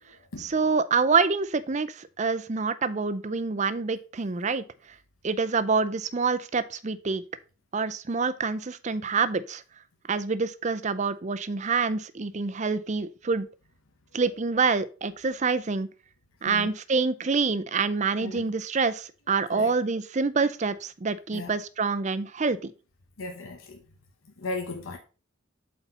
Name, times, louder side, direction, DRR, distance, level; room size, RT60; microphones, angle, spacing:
voice 1, 0.4-4.6 5.2-7.2 7.7-9.6 10.1-13.5 14.1-15.9 16.4-22.7, right 4 dB, 35° right, 0.5 m, -26 dB
voice 2, 23.2-23.8 24.4-25.0, left 3 dB, 80° left, 1.0 m, -36 dB
8.1 x 4.3 x 5.5 m
head